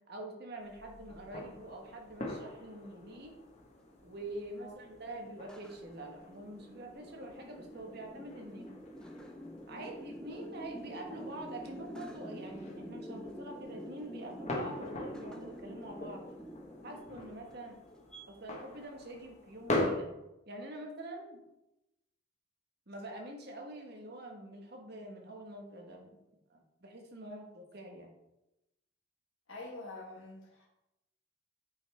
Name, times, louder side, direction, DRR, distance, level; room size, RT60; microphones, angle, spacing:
voice 1, 0.1-3.3 4.0-8.7 9.7-16.2 16.8-17.8 18.3-20.1 20.5-21.4 22.9-26.2 26.5-28.1, right 1 dB, 50° right, 2 dB, 1.4 m, -45 dB
sound 1, 0.6-19.9, left 1 dB, 35° left, 1.3 m, -43 dB
sound 2, 2.0-18.2, equal, 5° left, 0.5 m, -48 dB
voice 2, 29.5-30.7, left 2 dB, 75° left, -4 dB, 1.3 m, -46 dB
9.1 x 5.3 x 3.4 m, 0.92 s
head